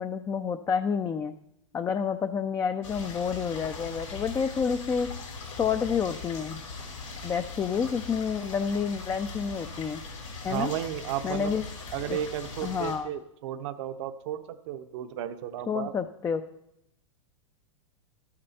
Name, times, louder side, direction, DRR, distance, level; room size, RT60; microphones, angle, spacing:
voice 1, 0.0-1.3 1.7-5.1 5.6-6.6 7.2-10.0 10.4-10.7 11.2-11.6 12.1-12.2 12.6-13.1 15.7-16.4, left 6 dB, 15° left, 9 dB, 0.4 m, -29 dB
sound 1, 2.8-13.0, left 4 dB, 85° left, 4.9 m, -40 dB
voice 2, 10.5-11.6 11.9-15.9, right 11 dB, 60° right, 9 dB, 0.8 m, -34 dB
12.5 x 8.7 x 4.2 m, 0.83 s
hypercardioid pair, 115°, 17 cm